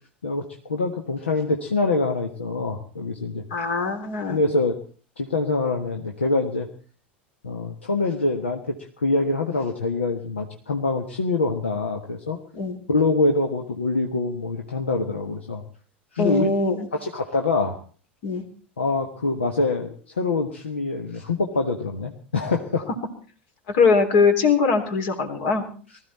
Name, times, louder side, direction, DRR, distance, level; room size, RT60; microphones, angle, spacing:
voice 1, 0.2-3.4 4.3-4.8 5.2-6.7 7.4-12.4 12.9-15.6 16.1-16.5 16.9-17.8 18.8-22.9, left 3 dB, 80° left, 3 dB, 1.4 m, -25 dB
voice 2, 3.5-4.4 12.5-12.8 16.2-16.9 18.2-18.4 23.7-25.6, left 4 dB, 60° left, 5 dB, 3.4 m, -21 dB
19.5 x 14.5 x 4.2 m, 0.40 s
figure-of-eight pair, 80°, 6 cm